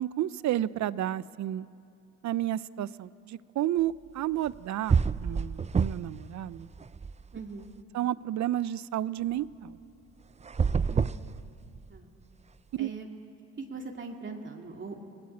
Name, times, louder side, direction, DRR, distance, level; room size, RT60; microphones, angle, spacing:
voice 1, 0.0-1.7 2.2-6.7 7.9-9.7 12.7-12.9, right 12 dB, 70° right, 18 dB, 0.7 m, -31 dB
sound 1, 4.5-4.6 4.9-6.2 6.5-7.6 10.4-12.0, right 5 dB, 20° right, 0.5 m, -28 dB
voice 2, 7.3-7.7 10.9-11.5 11.9-12.1 12.8-13.1 13.6-15.0, right 4 dB, 40° right, 1 dB, 2.4 m, -41 dB
29.5 x 17.5 x 8.6 m, 2.5 s
cardioid pair, 90°, 30 cm